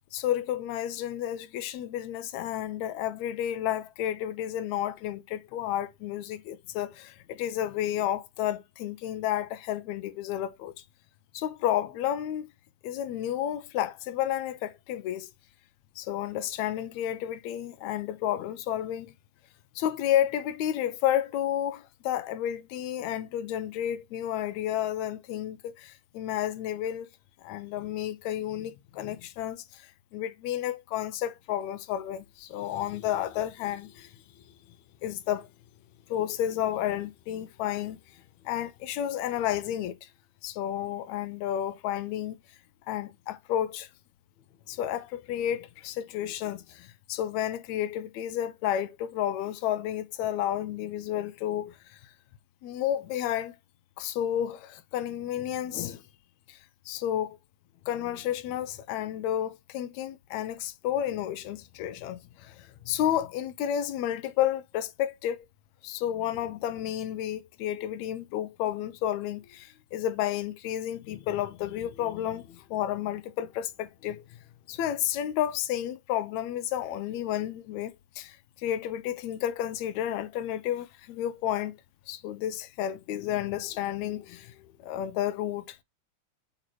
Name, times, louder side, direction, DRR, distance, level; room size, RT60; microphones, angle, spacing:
voice 1, 0.1-10.7 11.3-12.5 12.8-15.3 16.0-19.1 19.8-27.1 27.4-29.8 30.1-34.2 35.0-35.5 36.1-38.0 38.5-40.1 40.4-42.4 42.9-43.9 44.7-52.0 52.6-53.6 54.0-56.0 56.5-56.6 56.9-57.4 57.9-65.4 65.8-74.2 74.7-78.4 78.6-81.8 82.1-85.8, left 11 dB, 75° left, 1.8 m, -31 dB
6.8 x 4.3 x 4.5 m
omnidirectional pair, 3.5 m